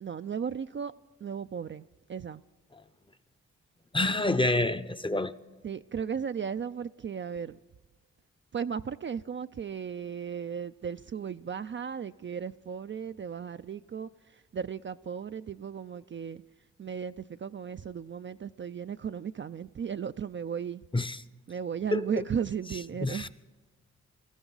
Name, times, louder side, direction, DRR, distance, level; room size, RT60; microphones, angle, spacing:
voice 1, 0.0-0.9 1.2-2.4 5.6-7.6 8.5-16.4 16.8-20.8 21.5-23.3, right 7 dB, 40° right, 0.4 m, -35 dB
voice 2, 3.9-5.4 20.9-21.2 21.9-22.1 23.0-23.3, left 2 dB, 15° left, 0.7 m, -27 dB
20.0 x 14.5 x 3.9 m
cardioid pair, 50°, 30 cm